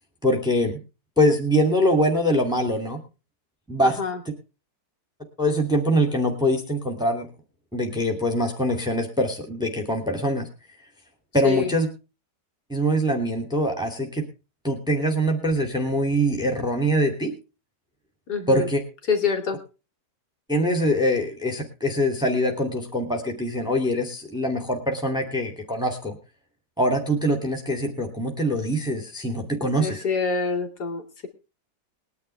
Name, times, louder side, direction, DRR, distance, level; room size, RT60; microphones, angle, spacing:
voice 1, 0.2-0.8 1.2-3.0 3.7-4.0 5.4-7.3 7.7-10.5 11.3-11.9 12.7-14.2 14.6-17.3 18.5-18.8 20.5-26.1 26.8-30.0, equal, ahead, 3 dB, 2.7 m, -23 dB
voice 2, 3.8-4.2 11.4-11.7 18.3-18.7 19.1-19.6 29.8-31.3, left 5 dB, 65° left, 6 dB, 3.2 m, -26 dB
21.0 x 10.5 x 3.4 m, 0.31 s
omnidirectional pair, 1.9 m